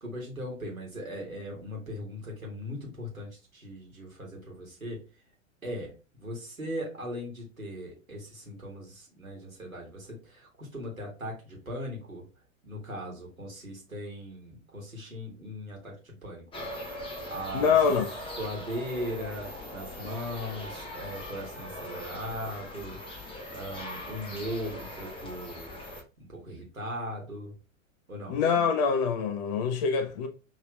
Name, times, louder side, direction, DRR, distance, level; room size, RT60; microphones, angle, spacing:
voice 1, 0.0-5.0 5.6-5.9 6.2-12.2 12.6-17.7 18.4-27.5 28.1-28.4, equal, 90° right, 1.5 m, -39 dB
sound 1, 16.5-26.0, left 1 dB, 15° left, 0.8 m, -41 dB
voice 2, 17.5-18.1 28.3-30.3, left 6 dB, 35° left, 0.4 m, -25 dB
6.4 x 3.0 x 2.2 m
figure-of-eight pair, 95°, 40 cm